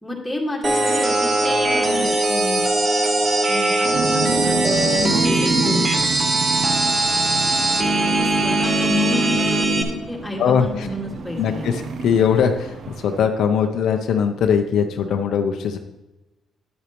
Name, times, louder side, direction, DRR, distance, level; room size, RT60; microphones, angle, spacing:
voice 1, 0.0-2.7 3.4-4.6 4.9-6.2 8.1-11.8, left 2 dB, 10° left, -1 dB, 2.0 m, -30 dB
sound 1, 0.6-9.8, right 2 dB, 30° right, 1.1 m, -20 dB
sound 2, 3.9-13.3, right 5 dB, 60° right, 0.6 m, -29 dB
voice 2, 10.4-10.9 11.4-15.8, left 7 dB, 70° left, 5 dB, 0.6 m, -20 dB
9.9 x 8.2 x 3.0 m, 1.0 s
cardioid pair, 90°, 0 cm